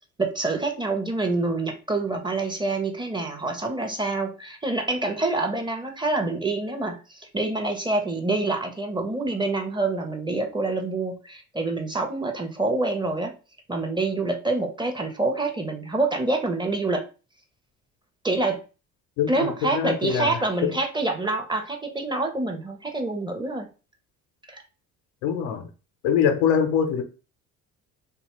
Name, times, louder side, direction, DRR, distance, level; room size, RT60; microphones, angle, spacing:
voice 1, 0.2-13.3 13.7-17.1 18.2-18.6 19.3-23.7 24.5-24.6, right 2 dB, 15° right, 0.7 m, -26 dB
voice 2, 19.2-20.7 25.2-25.7 26.0-27.0, left 8 dB, 85° left, 0.6 m, -24 dB
2.7 x 2.3 x 3.0 m
supercardioid pair, 70°, 35 cm